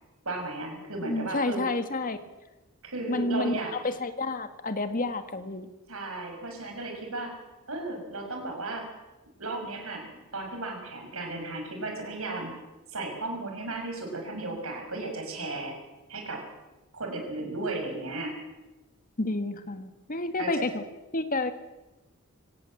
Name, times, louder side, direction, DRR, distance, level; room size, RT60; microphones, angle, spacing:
voice 1, 0.2-1.6 2.8-3.9 5.9-7.3 7.7-8.9 9.4-10.0 10.3-12.5 12.9-15.7 16.1-16.4 16.9-18.3 20.4-20.6, right 2 dB, 75° right, 2 dB, 6.6 m, -35 dB
voice 2, 1.0-2.2 3.1-5.7 19.2-20.8 21.1-21.5, left 2 dB, 40° left, 9 dB, 1.7 m, -30 dB
24.0 x 17.5 x 7.8 m, 1.1 s
head